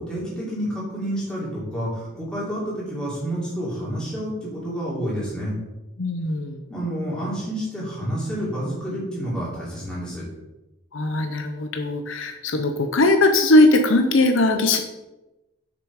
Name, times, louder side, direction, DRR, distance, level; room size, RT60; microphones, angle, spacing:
voice 1, 0.0-5.5 6.7-10.2, equal, 5° left, -7 dB, 3.1 m, -29 dB
voice 2, 6.0-6.6 10.9-14.8, left 2 dB, 70° left, 6 dB, 0.7 m, -19 dB
6.9 x 6.1 x 4.9 m, 1.0 s
head